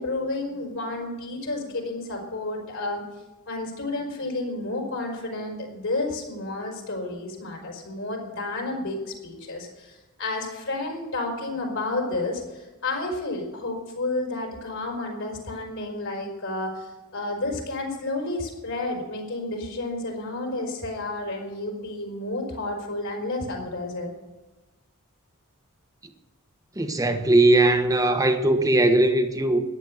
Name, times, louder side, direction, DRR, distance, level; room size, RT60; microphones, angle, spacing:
voice 1, 0.0-3.0 3.5-24.1, left 2 dB, 65° left, 5.0 m, -31 dB
voice 2, 26.8-29.6, right 2 dB, 15° right, 1.3 m, -19 dB
14.5 x 10.5 x 6.5 m
head